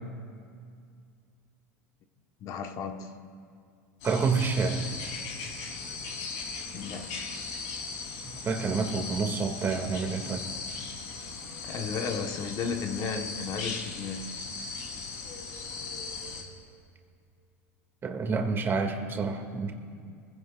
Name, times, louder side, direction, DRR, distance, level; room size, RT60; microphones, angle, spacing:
voice 1, 2.4-3.2 6.7-7.2 11.6-14.4, left 5 dB, 45° left, 1.2 m, -34 dB
sound 1, 4.0-16.4, left 4 dB, 70° left, 3.4 m, -38 dB
voice 2, 4.0-4.8 8.2-10.5 18.0-19.7, right 4 dB, 30° right, 2.2 m, -28 dB
24.0 x 16.0 x 2.4 m
hypercardioid pair, 95°, 8 cm